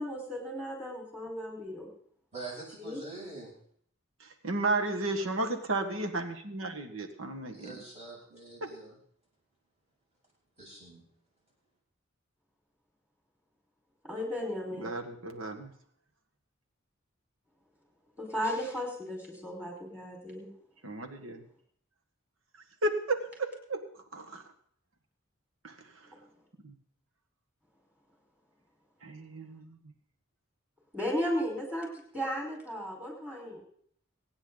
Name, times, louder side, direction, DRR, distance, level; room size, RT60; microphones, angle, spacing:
voice 1, 0.0-1.9 2.8-3.0 14.0-14.9 18.2-20.5 30.9-31.9 32.1-33.6, equal, 10° right, -1 dB, 5.0 m, -35 dB
voice 2, 2.3-3.5 7.5-9.0 10.6-11.1, right 3 dB, 35° right, -4 dB, 7.5 m, -44 dB
voice 3, 4.5-7.8 8.6-8.7 14.8-15.7 20.8-21.4 22.8-24.4 25.6-26.1 26.6-26.8 29.0-29.9, right 2 dB, 80° right, 4 dB, 1.8 m, -34 dB
25.5 x 9.6 x 4.0 m, 0.63 s
head